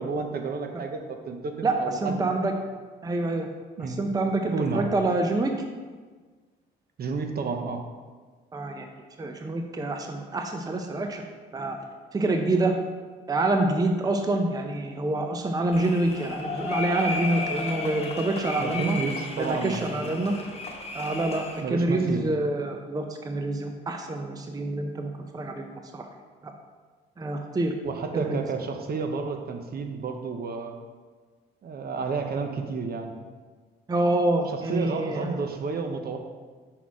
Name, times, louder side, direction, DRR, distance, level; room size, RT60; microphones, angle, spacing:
voice 1, 0.0-2.3 3.8-4.0 4.5-4.9 7.0-7.8 18.5-20.3 21.6-22.3 27.8-30.7 31.6-33.1 34.5-36.2, right 4 dB, 50° right, 5 dB, 0.7 m, -31 dB
voice 2, 2.0-2.5 3.0-3.5 3.8-5.5 8.5-8.9 9.2-11.2 11.5-11.8 12.1-12.8 13.3-19.0 19.4-20.3 20.9-26.1 26.4-26.5 27.2-27.7 28.1-28.4 33.9-35.4, right 2 dB, 20° right, 4 dB, 0.5 m, -27 dB
sound 1, 15.7-21.6, left 3 dB, 30° left, 1.0 m, -34 dB
5.9 x 4.1 x 4.7 m, 1.4 s
cardioid pair, 90°, 20 cm